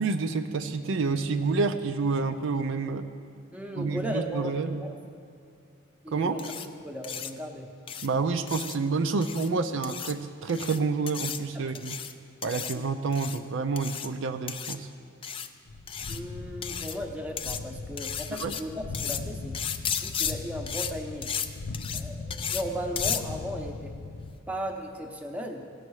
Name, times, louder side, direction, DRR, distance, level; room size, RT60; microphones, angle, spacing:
voice 1, 0.0-3.1 3.8-4.8 6.1-6.4 8.0-12.0 12.4-14.9 18.4-18.6, right 4 dB, 65° right, 7 dB, 0.5 m, -28 dB
voice 2, 3.5-4.9 6.0-6.5 6.8-7.7 11.5-11.8 16.1-18.7 19.0-19.7 20.0-21.3 21.9-24.0 24.5-25.6, equal, 5° right, 2 dB, 0.8 m, -36 dB
sound 1, 6.4-6.7 7.0-7.3 7.9-8.1 8.5-8.8 9.2-9.5 9.8-10.1 10.5-10.8 11.1-11.4 11.7-12.1 12.4-12.8 13.1-13.4 13.8-14.1 14.5-14.8 15.2-15.5 15.9-16.2 16.6-17.0 17.4-17.6 18.0-18.6 18.9-19.2 19.5-20.3 20.7-20.9 21.2-21.5 21.7-22.0 22.3-22.6 23.0-23.2, left 8 dB, 25° left, 0.3 m, -33 dB
sound 2, 15.7-24.3, left 3 dB, 75° left, 0.6 m, -39 dB
17.0 x 6.5 x 4.7 m, 2.4 s
head